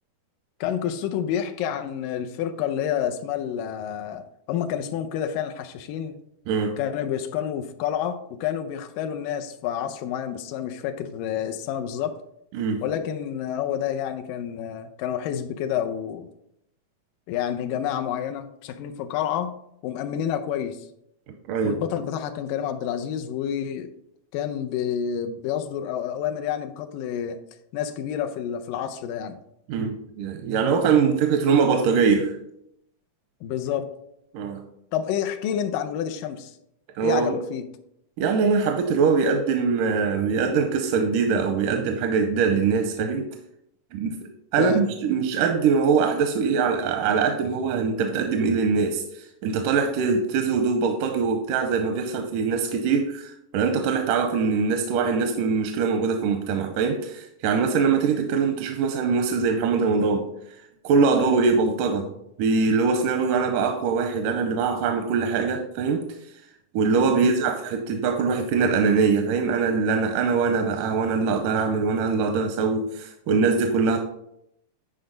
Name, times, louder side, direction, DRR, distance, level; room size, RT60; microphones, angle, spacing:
voice 1, 0.6-6.2 6.8-12.2 12.8-16.3 17.3-19.6 19.8-20.9 21.6-23.9 24.3-27.4 27.7-29.4 33.4-33.9 34.9-36.6 37.0-37.7 44.6-44.8 62.0-62.1 67.1-67.3, left 9 dB, 85° left, 7 dB, 2.3 m, -29 dB
voice 2, 6.5-6.8 12.5-12.8 21.5-21.8 29.7-32.3 34.3-34.6 37.0-37.4 38.2-43.3 43.9-44.2 44.5-60.3 60.8-62.1 62.4-66.1 66.7-74.0, right 5 dB, 85° right, 5 dB, 2.2 m, -22 dB
9.8 x 5.2 x 3.9 m, 0.77 s
omnidirectional pair, 3.7 m